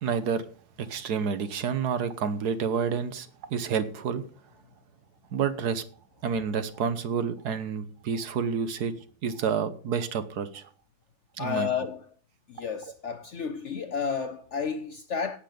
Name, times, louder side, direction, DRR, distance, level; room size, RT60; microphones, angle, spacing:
voice 1, 0.0-0.4 0.8-4.2 5.3-5.8 6.2-8.9 9.2-10.6 11.4-11.7, right 6 dB, 65° right, 1.5 m, -29 dB
voice 2, 11.4-12.1 12.5-15.4, left 6 dB, 60° left, 0.8 m, -31 dB
17.0 x 6.0 x 5.1 m
omnidirectional pair, 1.9 m